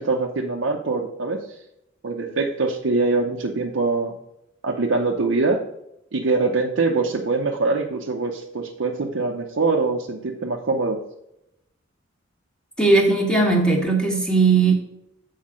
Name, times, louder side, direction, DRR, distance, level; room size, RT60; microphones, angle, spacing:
voice 1, 0.0-1.6 2.0-4.2 4.6-5.6 6.1-11.0, right 3 dB, 70° right, 0 dB, 0.7 m, -23 dB
voice 2, 12.8-14.7, right 3 dB, 5° left, 1 dB, 1.4 m, -18 dB
7.4 x 4.7 x 6.1 m, 0.83 s
head